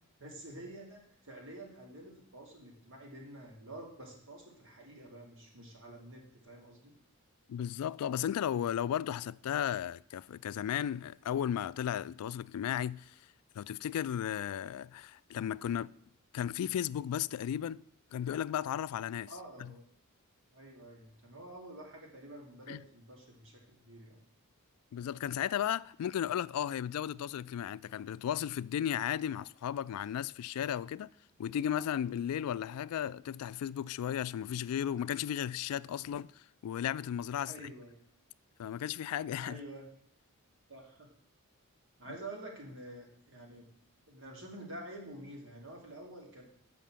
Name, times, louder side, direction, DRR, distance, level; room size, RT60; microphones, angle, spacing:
voice 1, 0.2-6.9 19.3-19.9 20.5-24.2 37.4-38.0 39.4-39.9 40.7-41.1 42.0-43.7 44.1-46.4, right 1 dB, 60° right, 2.6 m, -48 dB
voice 2, 7.5-13.2 13.6-15.9 16.3-17.8 18.1-19.3 19.6-19.7 22.7-22.8 24.9-31.1 31.4-37.5 38.6-39.6, left 10 dB, 80° left, 0.3 m, -35 dB
7.0 x 5.8 x 7.4 m
head